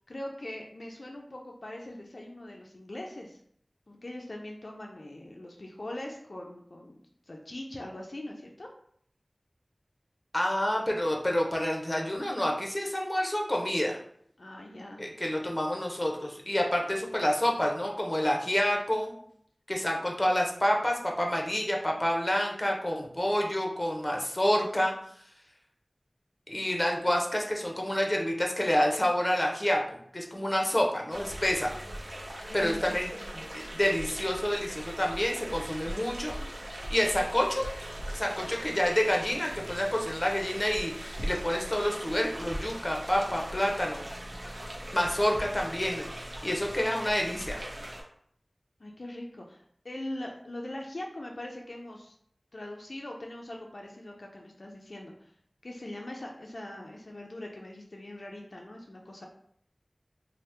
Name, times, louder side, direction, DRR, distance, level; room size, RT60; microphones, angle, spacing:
voice 1, 0.1-3.4 3.9-7.0 7.3-8.7 14.4-15.0 32.5-33.2 48.8-52.1 52.5-55.3 55.6-59.3, left 1 dB, 75° left, 0 dB, 0.3 m, -41 dB
voice 2, 10.3-14.0 15.0-19.1 19.7-24.9 26.5-31.7 32.5-36.4 36.9-37.7 38.1-44.0 44.9-47.6, equal, 30° left, 0 dB, 0.6 m, -28 dB
sound 1, 31.1-48.0, right 1 dB, 80° right, 0.6 m, -40 dB
2.8 x 2.0 x 3.2 m, 0.65 s
wide cardioid pair, 50°, 0 cm